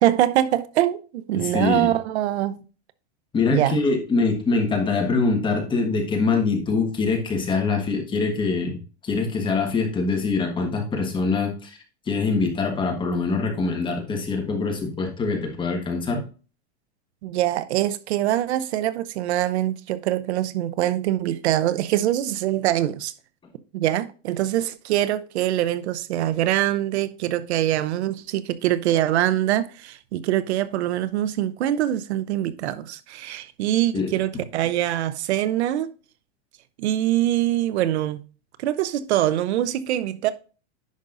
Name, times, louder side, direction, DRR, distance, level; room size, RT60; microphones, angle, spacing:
voice 1, 0.0-2.6 3.5-3.8 17.2-23.1 23.7-35.9 36.8-38.2 38.6-40.3, right 13 dB, 80° right, 0.7 m, -24 dB
voice 2, 1.4-1.9 3.3-11.8 12.1-16.2 33.9-34.1, left 4 dB, 15° left, 1.5 m, -24 dB
10.5 x 5.3 x 2.6 m
supercardioid pair, 155°, 33 cm